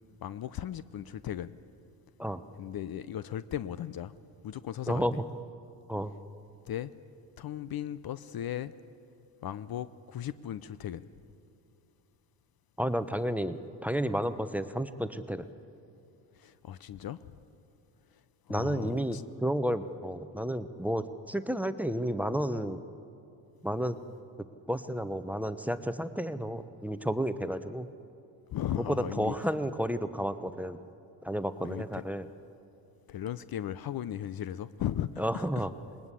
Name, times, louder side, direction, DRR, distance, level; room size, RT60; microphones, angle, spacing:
voice 1, 0.2-1.5 2.6-4.1 4.4-5.1 6.7-6.9 7.4-8.7 9.4-11.1 16.4-17.3 18.5-19.2 28.5-29.3 31.6-32.0 33.1-35.6, left 11 dB, 50° left, 16 dB, 0.7 m, -37 dB
voice 2, 12.8-15.5 18.5-22.8 23.6-24.0 24.7-27.9 28.9-30.8 31.2-32.3 35.2-35.7, equal, 5° right, 12 dB, 0.9 m, -31 dB
20.0 x 20.0 x 8.4 m, 2.7 s
supercardioid pair, 65°, 47 cm